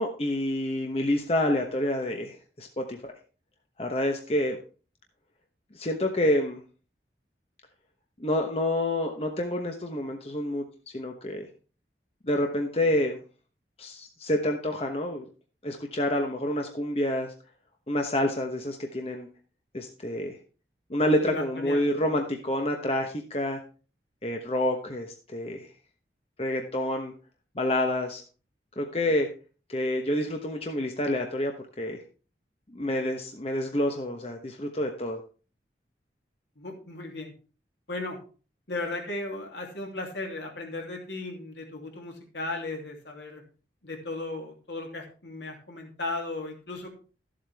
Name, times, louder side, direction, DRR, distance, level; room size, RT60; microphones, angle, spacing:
voice 1, 0.0-3.1 3.8-4.6 5.7-6.6 8.2-10.6 10.9-11.5 12.2-13.2 13.8-15.2 15.6-17.3 17.9-19.3 19.7-20.4 20.9-23.6 24.2-25.7 26.4-27.1 27.5-28.2 28.8-29.3 29.7-32.0 32.7-35.2, left 1 dB, 35° left, 3 dB, 1.0 m, -28 dB
voice 2, 21.2-21.9 36.6-37.3 37.9-38.2 38.7-43.4 43.8-46.9, left 2 dB, 80° left, 1 dB, 2.8 m, -36 dB
13.5 x 7.6 x 3.5 m, 0.36 s
head